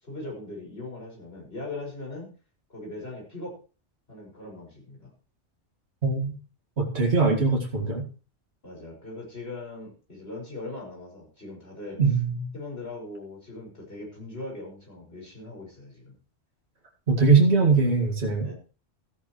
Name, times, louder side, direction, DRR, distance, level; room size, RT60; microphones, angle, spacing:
voice 1, 0.0-2.3 2.7-3.6 4.1-5.1 8.6-12.0 12.5-16.2 18.4-18.6, left 2 dB, 55° left, -1 dB, 6.1 m, -40 dB
voice 2, 6.0-6.4 6.8-8.0 12.0-12.5 17.1-18.5, right 4 dB, 65° right, -1 dB, 2.4 m, -21 dB
14.0 x 12.0 x 3.1 m, 0.36 s
omnidirectional pair, 1.2 m